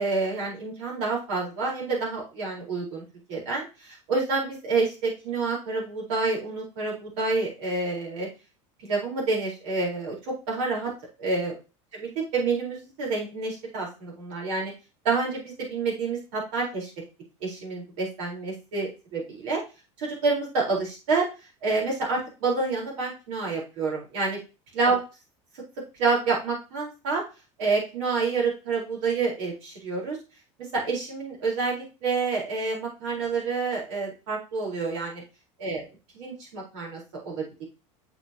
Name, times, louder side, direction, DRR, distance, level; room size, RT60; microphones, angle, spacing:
voice 1, 0.0-3.0 3.3-8.3 8.8-10.9 11.2-11.6 12.0-14.7 15.0-16.9 17.4-19.6 20.0-21.3 21.6-24.4 24.7-25.0 26.0-27.2 27.6-30.2 30.7-35.2 35.6-35.9 36.1-37.6, right 4 dB, 75° right, -2 dB, 4.3 m, -28 dB
8.7 x 5.6 x 2.9 m, 0.30 s
hypercardioid pair, 95°, 16 cm